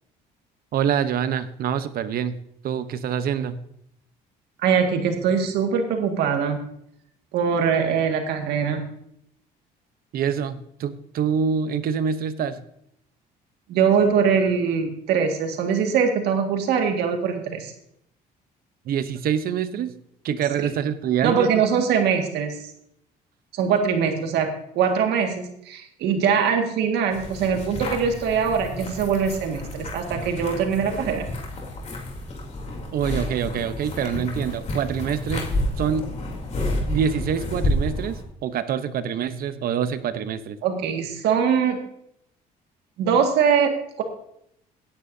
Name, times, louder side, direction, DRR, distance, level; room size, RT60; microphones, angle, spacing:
voice 1, 0.7-2.4 2.6-3.6 10.1-12.6 18.8-20.0 20.2-21.5 32.9-35.5 35.8-36.1 36.9-40.6, right 8 dB, 60° right, 12 dB, 0.9 m, -25 dB
voice 2, 4.6-6.6 7.3-8.8 13.7-17.7 21.2-22.6 23.5-24.5 24.8-31.3 40.6-41.8 43.0-44.0, right 6 dB, 80° right, 4 dB, 2.0 m, -22 dB
sound 1, 27.1-38.2, left 1 dB, 40° left, 3.3 m, -30 dB
16.5 x 10.5 x 2.8 m, 0.73 s
cardioid pair, 110°, 17 cm